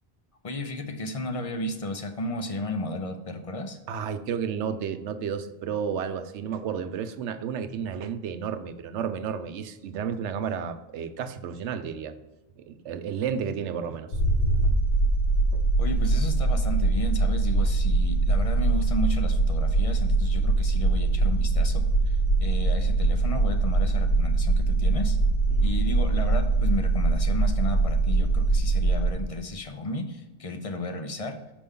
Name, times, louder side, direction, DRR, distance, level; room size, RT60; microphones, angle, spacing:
voice 1, 0.4-3.8 15.8-25.2 25.6-31.4, left 1 dB, 40° left, 7 dB, 0.6 m, -33 dB
voice 2, 3.9-12.1 12.6-14.2 15.5-15.6 25.5-25.7, right 7 dB, 80° right, 10 dB, 0.9 m, -32 dB
sound 1, 14.1-29.1, right 3 dB, 55° left, 1.0 m, -23 dB
6.8 x 5.1 x 3.6 m, 1.1 s
omnidirectional pair, 1.2 m